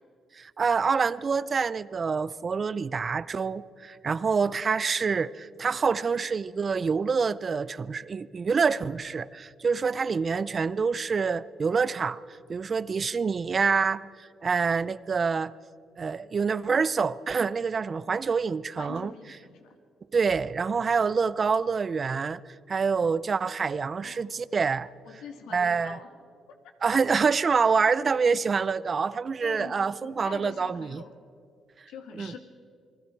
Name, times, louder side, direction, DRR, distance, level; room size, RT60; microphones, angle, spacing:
voice 1, 0.4-12.2 12.5-15.5 16.0-19.1 20.1-22.4 22.7-25.2 25.5-26.0 26.8-31.0 32.2-32.3, right 5 dB, 40° right, 0.5 m, -26 dB
voice 2, 18.8-19.8 24.0-24.3 25.1-26.1 29.4-29.8 30.0-31.1 31.9-32.4, left 6 dB, 90° left, 2.0 m, -44 dB
28.5 x 20.0 x 4.6 m
cardioid pair, 90°, 0 cm